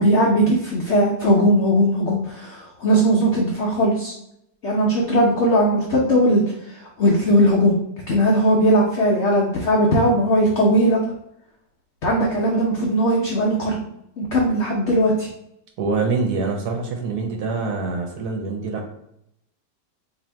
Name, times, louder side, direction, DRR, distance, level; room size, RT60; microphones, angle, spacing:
voice 1, 0.0-4.1 4.6-7.8 8.1-11.0 12.0-13.8 14.2-15.3, equal, 80° left, -1 dB, 0.6 m, -19 dB
voice 2, 15.8-18.9, right 4 dB, 65° right, 2 dB, 1.1 m, -25 dB
2.8 x 2.7 x 4.3 m, 0.79 s
omnidirectional pair, 2.0 m